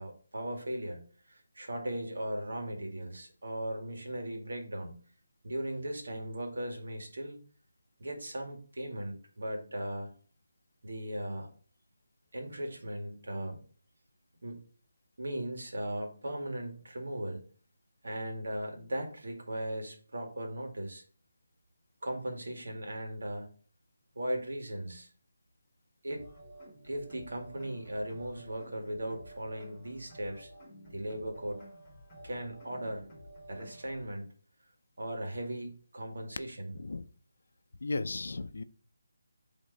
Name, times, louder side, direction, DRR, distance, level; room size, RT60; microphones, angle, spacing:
voice 1, 0.0-5.0 5.4-7.4 8.0-10.1 10.8-11.5 12.3-13.6 14.4-14.6 15.2-17.4 18.0-21.0 22.0-23.5 24.1-25.1 26.0-26.2 26.8-30.5 30.9-31.6 32.2-33.1 33.5-34.3 35.0-36.8, right 1 dB, 75° right, 3 dB, 2.1 m, -38 dB
sound 1, 26.1-34.1, right 1 dB, 10° left, 2.7 m, -51 dB
voice 2, 36.7-37.1 37.8-38.6, left 3 dB, 70° left, 12 dB, 0.5 m, -35 dB
8.4 x 3.6 x 4.0 m, 0.43 s
hypercardioid pair, 175°, 0 cm